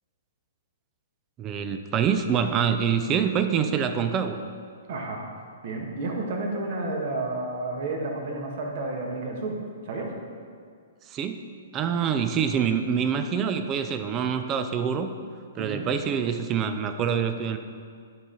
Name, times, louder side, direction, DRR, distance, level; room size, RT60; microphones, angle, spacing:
voice 1, 1.4-4.4 11.1-11.4 11.7-15.1 15.5-17.6, right 7 dB, 25° right, 9 dB, 0.5 m, -25 dB
voice 2, 4.9-5.2 5.6-9.6 9.8-10.1 12.0-12.1 15.6-15.9, right 2 dB, 50° right, 1 dB, 1.5 m, -31 dB
12.0 x 5.0 x 3.8 m, 2.1 s
figure-of-eight pair, 115°, 0 cm